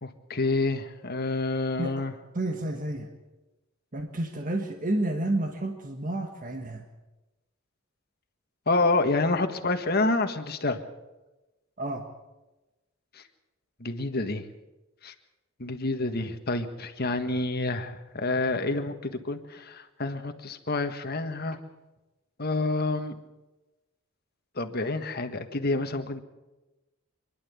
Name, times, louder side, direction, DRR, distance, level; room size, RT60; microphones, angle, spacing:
voice 1, 0.0-2.1 8.7-10.8 13.8-14.4 15.0-15.1 15.6-21.6 22.4-23.1 24.6-26.2, left 2 dB, 45° left, 7 dB, 1.6 m, -28 dB
voice 2, 2.3-3.1 3.9-6.8 11.8-12.0, right 1 dB, 40° right, 4 dB, 1.5 m, -30 dB
26.5 x 11.5 x 8.4 m, 1.1 s
head